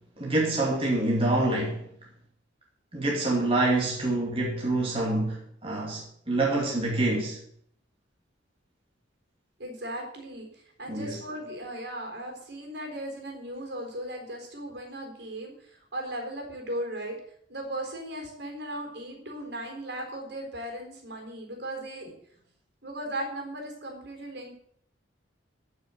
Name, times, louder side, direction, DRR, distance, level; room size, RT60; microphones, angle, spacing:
voice 1, 0.2-1.8 2.9-7.4 10.9-11.2, right 2 dB, 30° right, 2.5 m, -26 dB
voice 2, 9.6-17.2 17.5-22.1 22.8-24.5, right 1 dB, 65° right, 4.1 m, -37 dB
13.5 x 6.3 x 8.0 m
head